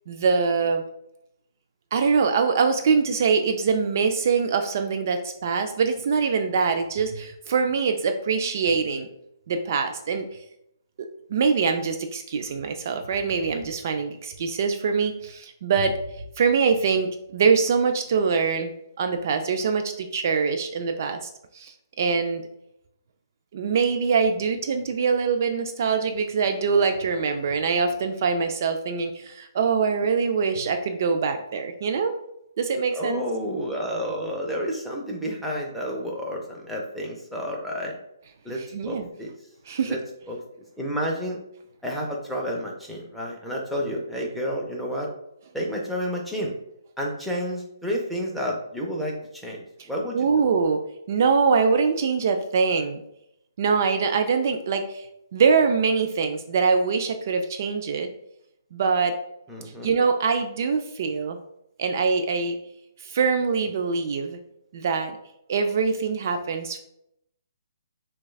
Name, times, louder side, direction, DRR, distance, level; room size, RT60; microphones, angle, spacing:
voice 1, 0.1-0.8 1.9-9.1 9.5-10.3 11.3-16.0 16.4-18.7 19.0-21.3 21.5-22.4 23.5-32.1 32.6-33.2 38.6-39.1 39.7-40.0 50.1-50.8 51.1-53.0 53.6-55.1 55.3-58.1 58.7-59.1 59.8-61.4 61.8-62.6 63.0-64.4 64.7-65.2 65.5-66.8, right 5 dB, 50° right, 6 dB, 0.3 m, -23 dB
voice 2, 32.9-38.0 38.4-39.3 39.9-40.0 40.3-40.4 40.8-41.4 41.8-45.1 45.5-46.5 47.0-49.1 49.4-50.4 59.5-59.9, equal, ahead, -3 dB, 0.5 m, -30 dB
5.9 x 2.3 x 2.3 m, 0.80 s
hypercardioid pair, 155°, 2 cm